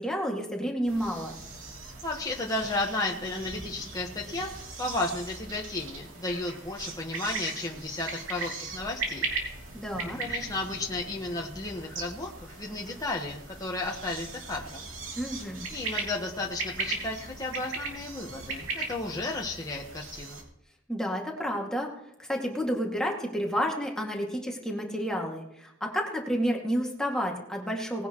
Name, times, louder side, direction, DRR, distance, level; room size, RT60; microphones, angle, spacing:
voice 1, 0.0-1.4 9.7-10.2 15.2-15.7 20.9-21.9 22.3-28.1, equal, 5° left, 0 dB, 2.2 m, -30 dB
sound 1, 0.9-20.4, right 3 dB, 80° right, 3.0 m, -38 dB
voice 2, 2.0-4.5 4.8-9.3 10.2-14.9 15.7-20.4, left 2 dB, 20° left, -1 dB, 1.3 m, -33 dB
19.5 x 10.0 x 3.1 m, 0.83 s
head